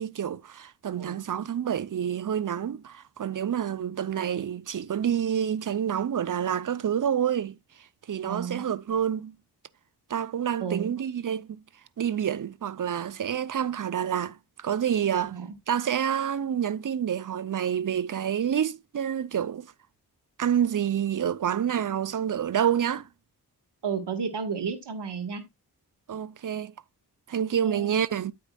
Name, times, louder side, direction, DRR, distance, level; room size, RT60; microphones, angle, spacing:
voice 1, 0.0-7.6 8.1-9.3 10.1-11.6 12.0-15.3 15.7-19.7 20.4-23.1 26.1-26.7 27.3-28.3, right 9 dB, 50° right, 0.6 m, -28 dB
voice 2, 0.8-1.2 8.2-8.6 10.6-10.9 15.3-15.5 23.8-25.4 27.6-28.0, right 6 dB, 85° right, 1.7 m, -32 dB
9.2 x 8.5 x 2.3 m
cardioid pair, 55°, 40 cm